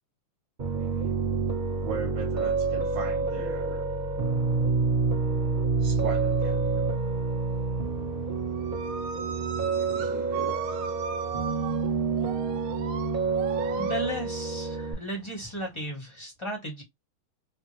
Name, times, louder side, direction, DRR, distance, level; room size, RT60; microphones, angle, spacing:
Piano, 0.6-14.9, right 4 dB, 40° right, 0.7 m, -28 dB
voice 1, 0.7-1.1 1.8-3.9 5.8-6.9 9.3-10.6, right 7 dB, 70° right, 1.4 m, -38 dB
sound 1, 6.1-7.1 7.4-16.0, right 6 dB, 85° right, 1.5 m, -39 dB
voice 2, 13.8-16.8, equal, 20° left, 0.8 m, -35 dB
3.5 x 2.0 x 3.0 m
omnidirectional pair, 2.3 m